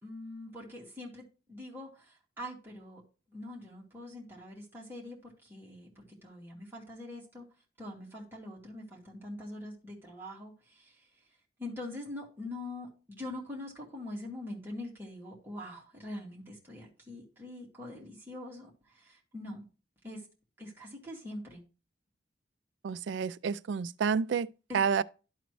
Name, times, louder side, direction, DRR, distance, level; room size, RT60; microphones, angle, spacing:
voice 1, 0.0-3.0 3.3-7.4 7.8-11.1 11.6-19.6 20.0-20.3 20.6-21.6 24.7-24.8, left 1 dB, 10° right, 2.3 m, -44 dB
voice 2, 22.8-24.5 24.7-25.0, right 6 dB, 80° right, 0.3 m, -29 dB
12.0 x 4.0 x 3.1 m
head